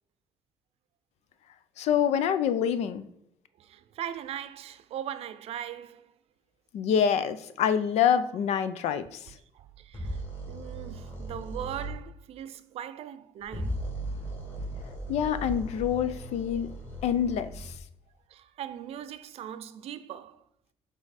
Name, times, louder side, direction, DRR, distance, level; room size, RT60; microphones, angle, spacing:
voice 1, 1.8-3.0 6.7-9.2 15.1-16.7 17.0-17.7, left 8 dB, 80° left, 0.6 m, -26 dB
voice 2, 3.6-6.1 8.6-8.9 9.5-10.2 10.5-13.7 16.6-16.7 18.3-20.4, right 10 dB, 65° right, 0.5 m, -40 dB
sound 1, 9.9-11.9 13.4-17.8, right 1 dB, 20° left, 2.6 m, -37 dB
8.7 x 3.6 x 4.1 m
cardioid pair, 130°, 11 cm